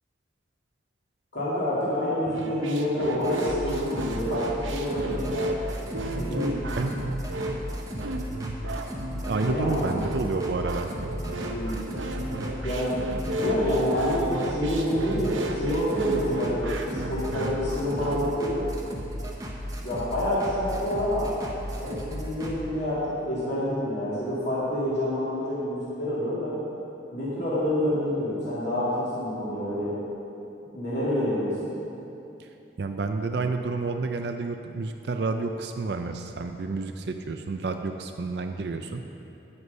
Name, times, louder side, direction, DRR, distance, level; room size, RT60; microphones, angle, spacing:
voice 1, 1.3-5.6 6.1-6.7 9.4-9.9 11.5-11.8 12.6-13.1 13.4-18.6 19.8-21.3 21.7-26.6 27.1-30.0 30.7-31.7, equal, 65° left, -9 dB, 2.5 m, -27 dB
sound 1, 2.2-18.2, right 2 dB, 85° right, 0.8 m, -33 dB
sound 2, 3.2-22.6, equal, 20° right, 0.9 m, -35 dB
voice 2, 9.2-10.9 32.4-32.5 32.8-39.0, right 3 dB, 60° right, 5 dB, 0.4 m, -29 dB
9.7 x 8.0 x 5.5 m, 2.8 s
head